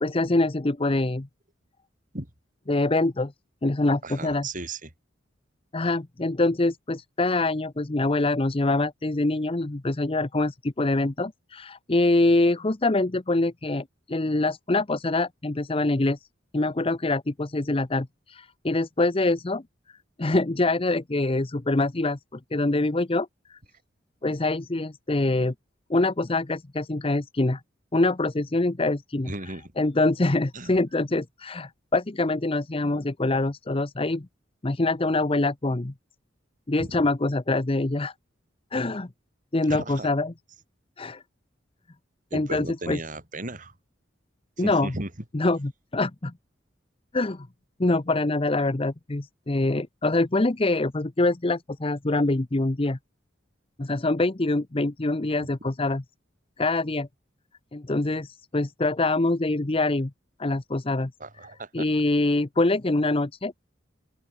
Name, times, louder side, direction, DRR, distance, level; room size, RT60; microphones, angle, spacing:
voice 1, 0.0-1.3 2.7-3.3 3.6-4.5 5.7-16.2 16.5-19.6 20.2-23.6 24.2-25.5 25.9-27.6 27.9-29.3 29.8-34.3 34.6-35.9 36.7-38.1 38.7-39.1 39.5-40.3 41.0-41.2 42.3-43.0 44.6-44.9 45.3-46.3 47.1-47.5 47.8-53.0 53.8-56.0 56.6-57.1 57.7-60.1 60.4-61.1 61.7-63.5, left 2 dB, 30° left, 0.8 m, -25 dB
voice 2, 4.0-4.9 29.3-29.7 30.5-30.8 36.8-37.1 39.6-40.1 42.3-43.8 44.6-45.1 55.4-55.5 61.2-61.9, right 2 dB, 45° right, 4.5 m, -36 dB
open air
head